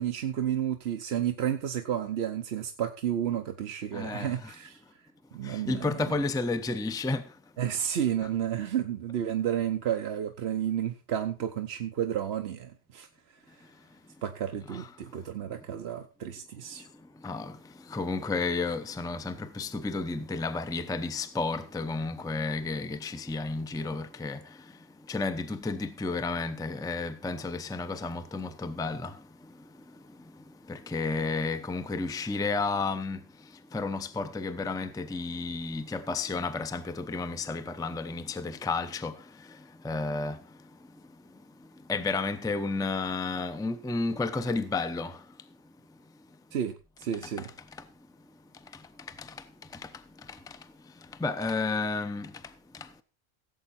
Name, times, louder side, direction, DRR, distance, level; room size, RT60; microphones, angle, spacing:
voice 1, 0.0-4.8 5.3-6.0 7.6-13.1 14.2-16.9 46.5-46.7 47.0-47.5, right 10 dB, 75° right, 1.0 m, -31 dB
voice 2, 3.9-4.6 5.4-7.4 8.2-8.3 14.7-14.9 17.2-24.8 25.1-40.7 41.3-41.4 41.9-45.3 47.2-47.9 48.7-53.0, left 3 dB, 5° left, 0.7 m, -33 dB
16.0 x 7.9 x 4.3 m
omnidirectional pair, 1.1 m